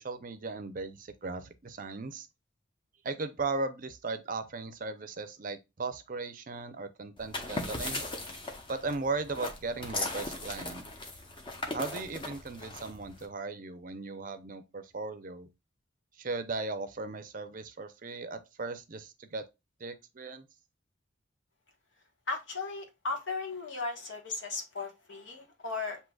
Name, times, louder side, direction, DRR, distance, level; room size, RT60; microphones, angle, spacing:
voice 1, 0.0-2.3 3.0-8.0 8.7-10.8 11.7-15.5 16.2-19.4 19.8-20.5, right 3 dB, 45° right, 0.5 m, -37 dB
sound 1, 7.2-13.2, left 2 dB, 25° left, 0.8 m, -38 dB
voice 2, 22.3-26.0, left 3 dB, 75° left, 1.3 m, -36 dB
7.5 x 2.8 x 2.3 m
head